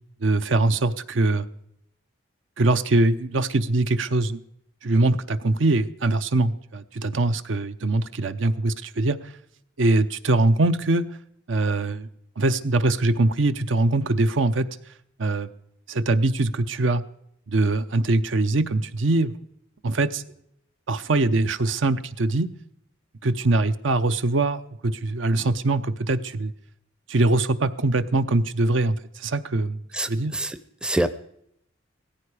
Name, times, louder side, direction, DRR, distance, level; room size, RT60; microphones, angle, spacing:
voice 1, 0.2-1.5 2.6-4.4 4.8-9.2 9.8-11.0 11.5-12.1 12.4-14.7 15.2-15.5 15.9-17.0 17.5-19.3 19.8-20.2 20.9-22.5 23.2-26.5 27.1-29.8 30.1-30.3, right 2 dB, 70° right, 12 dB, 0.7 m, -22 dB
voice 2, 29.9-31.1, right 1 dB, 5° right, 13 dB, 0.5 m, -26 dB
16.5 x 14.5 x 4.9 m, 0.73 s
head